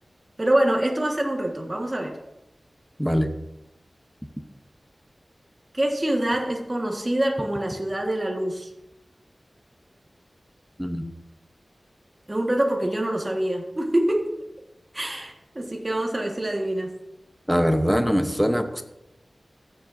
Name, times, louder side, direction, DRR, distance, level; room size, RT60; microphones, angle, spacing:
voice 1, 0.4-2.2 5.7-8.7 12.3-14.3 14.9-17.0, right 1 dB, 25° right, 1 dB, 1.5 m, -25 dB
voice 2, 17.5-18.8, equal, ahead, 7 dB, 0.8 m, -22 dB
14.5 x 7.6 x 2.6 m, 0.89 s
wide cardioid pair, 85°, 0 cm